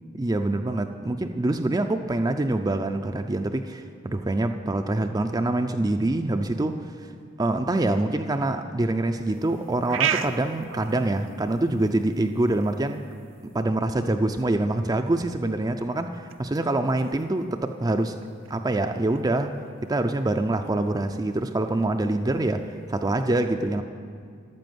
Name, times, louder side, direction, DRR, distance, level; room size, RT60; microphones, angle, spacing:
voice 1, 0.1-7.1 7.4-13.0 13.5-18.2 18.5-23.8, right 2 dB, 20° right, 6 dB, 0.4 m, -25 dB
sound 1, 9.2-23.3, right 9 dB, 70° right, 0.6 m, -38 dB
13.0 x 8.3 x 9.3 m, 2.2 s
head